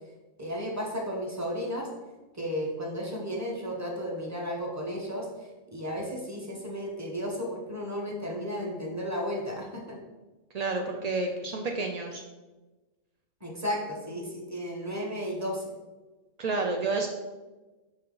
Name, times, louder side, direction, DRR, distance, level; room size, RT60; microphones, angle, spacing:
voice 1, 0.4-1.9 2.3-10.0 13.4-15.7, equal, 15° right, -1 dB, 1.0 m, -34 dB
voice 2, 10.5-12.2 16.4-17.1, right 3 dB, 65° right, 2 dB, 0.4 m, -30 dB
5.7 x 5.3 x 3.8 m, 1.2 s
omnidirectional pair, 1.4 m